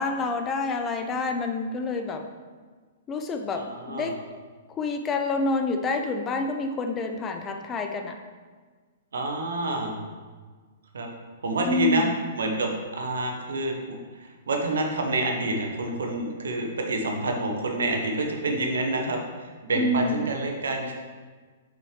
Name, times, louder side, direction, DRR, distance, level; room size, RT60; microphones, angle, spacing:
voice 1, 0.0-2.2 3.1-4.2 4.8-8.2 11.6-12.2 19.8-20.3, left 3 dB, 20° left, 5 dB, 0.5 m, -28 dB
voice 2, 3.5-4.1 9.1-10.0 10.9-11.1 11.4-12.1 12.4-14.0 14.5-19.2 19.6-20.9, right 2 dB, 65° right, 2 dB, 1.0 m, -27 dB
5.6 x 5.1 x 4.6 m, 1.5 s
figure-of-eight pair, 110°, 0 cm